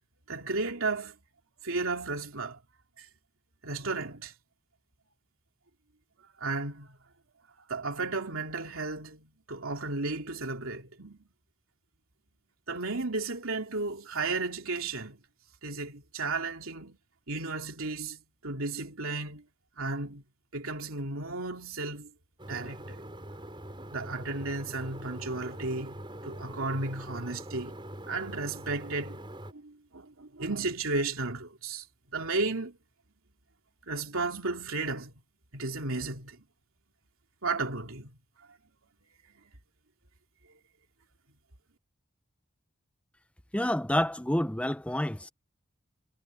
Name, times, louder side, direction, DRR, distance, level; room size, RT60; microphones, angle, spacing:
voice 1, 0.3-1.2 1.6-2.6 3.0-3.1 3.6-4.3 6.4-7.0 7.7-11.3 12.7-15.2 15.6-17.0 17.3-19.4 19.8-20.2 20.5-22.1 22.5-23.0 23.9-27.7 28.1-29.2 29.5-32.8 33.9-35.1 35.5-36.4 37.4-38.1, right 3 dB, 90° right, 3.0 m, -34 dB
sound 1, 22.4-29.5, right 1 dB, 25° right, 5.3 m, -43 dB
voice 2, 43.5-45.3, left 1 dB, 5° left, 0.7 m, -28 dB
head